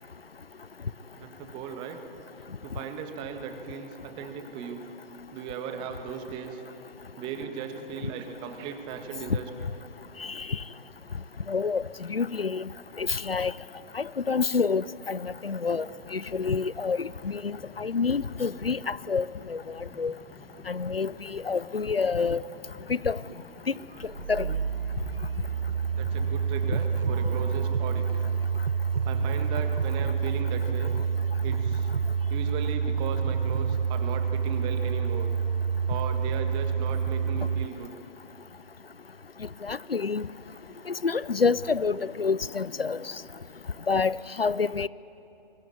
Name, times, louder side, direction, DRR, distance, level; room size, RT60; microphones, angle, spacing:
voice 1, 1.2-2.0 2.6-4.8 5.3-6.6 7.1-9.5 26.0-28.2 29.0-30.9 31.4-31.9 32.3-35.3 35.9-37.9, right 7 dB, 15° right, 1.7 m, -37 dB
Train, 8.5-28.5, left 3 dB, 5° left, 0.7 m, -54 dB
voice 2, 10.2-10.6 11.5-11.8 12.1-12.7 13.0-13.5 13.9-20.1 20.7-22.4 22.9-23.2 24.3-24.5 39.6-40.3 40.9-43.0 43.9-44.9, left 5 dB, 80° left, 0.7 m, -28 dB
sound 1, 24.0-37.7, right 6 dB, 70° right, 0.5 m, -28 dB
26.0 x 22.5 x 9.6 m
figure-of-eight pair, 135°, 29 cm